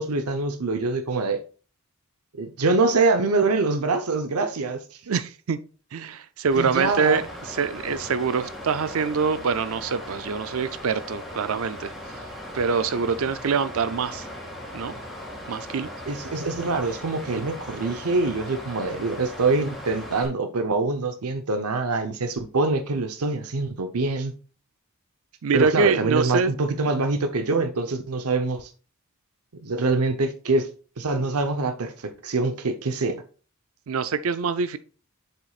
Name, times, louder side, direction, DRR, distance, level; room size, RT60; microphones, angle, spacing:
voice 1, 0.0-1.4 2.3-4.8 6.5-7.2 16.1-24.3 25.5-28.7 29.6-30.7 31.0-33.2, right 3 dB, 85° right, 0.8 m, -24 dB
voice 2, 5.1-5.6 5.9-11.9 12.5-14.3 14.7-14.9 15.5-15.9 25.4-26.5 33.9-34.8, right 5 dB, 65° right, 0.5 m, -25 dB
Water, 6.5-20.3, left 1 dB, ahead, 2.7 m, -38 dB
7.5 x 6.7 x 2.4 m
head